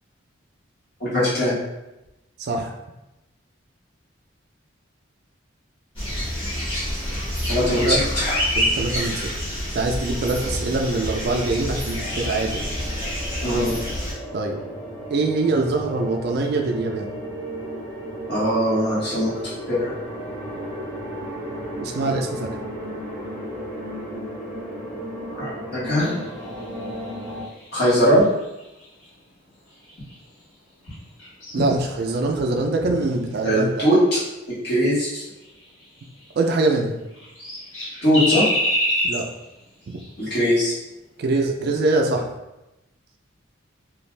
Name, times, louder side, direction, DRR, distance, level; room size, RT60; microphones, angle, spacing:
voice 1, 1.0-1.6 7.5-8.4 13.4-13.7 18.3-19.3 19.7-19.9 25.3-26.1 27.7-28.3 33.4-34.2 34.6-35.2 38.0-38.5 40.2-40.7, equal, 55° left, -9 dB, 1.3 m, -20 dB
voice 2, 2.4-2.7 7.7-8.0 8.6-9.3 9.7-12.6 14.3-14.6 15.1-17.1 21.8-22.6 31.5-33.9 36.4-37.0 39.0-39.3 41.2-42.3, right 2 dB, 50° right, 2 dB, 0.3 m, -23 dB
sound 1, 6.0-14.1, equal, 25° left, 1.1 m, -27 dB
sound 2, 11.9-27.4, equal, 10° left, 0.8 m, -34 dB
sound 3, 26.0-30.5 30.8-34.1 34.6-34.7 35.0-35.1 35.4-36.8 37.1-40.6 40.8-40.9 41.4-41.6, equal, 80° left, 1.2 m, -30 dB
2.5 x 2.3 x 3.2 m, 0.96 s
head